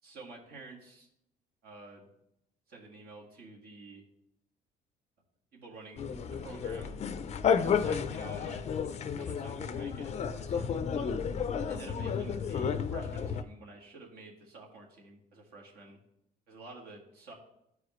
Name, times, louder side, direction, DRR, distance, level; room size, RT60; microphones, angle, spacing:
voice 1, 0.0-1.1 1.6-2.1 2.7-4.0 5.5-6.9 7.6-8.7 9.1-11.1 11.7-16.0 16.5-17.3, right 3 dB, 65° right, -1 dB, 1.8 m, -50 dB
sound 1, 6.0-13.4, left 6 dB, 40° left, 0.5 m, -32 dB
12.5 x 4.9 x 3.1 m, 0.82 s
cardioid pair, 110°, 17 cm